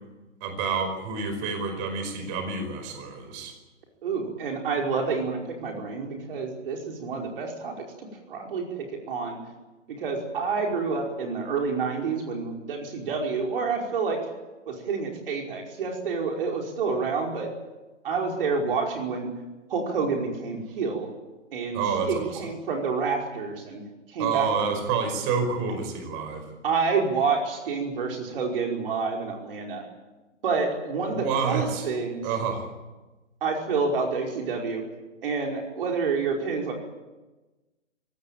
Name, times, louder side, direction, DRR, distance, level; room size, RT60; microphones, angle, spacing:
voice 1, 0.4-3.5 21.7-22.4 24.2-26.5 31.1-31.9 32.2-32.7, right 5 dB, 30° right, 6 dB, 5.1 m, -28 dB
voice 2, 4.0-9.4 9.9-14.2 14.7-17.5 18.0-19.3 19.7-21.1 21.5-23.8 24.1-24.7 26.6-29.8 30.4-32.3 33.4-34.8 35.2-36.7, right 4 dB, 50° right, 1 dB, 5.2 m, -28 dB
23.5 x 18.0 x 9.0 m, 1.2 s
figure-of-eight pair, 135°, 37 cm